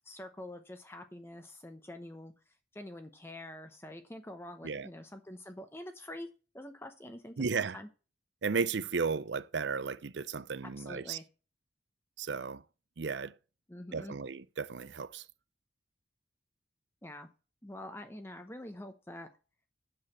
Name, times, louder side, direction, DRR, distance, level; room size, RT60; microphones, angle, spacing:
voice 1, 0.0-2.3 2.7-6.3 6.5-7.9 10.6-11.2 13.7-14.2 17.0-17.3 17.6-19.3, left 1 dB, 15° left, 0.9 m, -46 dB
voice 2, 7.4-7.8 8.4-11.2 12.2-12.6 13.0-13.3 13.9-15.2, right 5 dB, 85° right, 0.6 m, -34 dB
7.8 x 6.5 x 7.4 m
head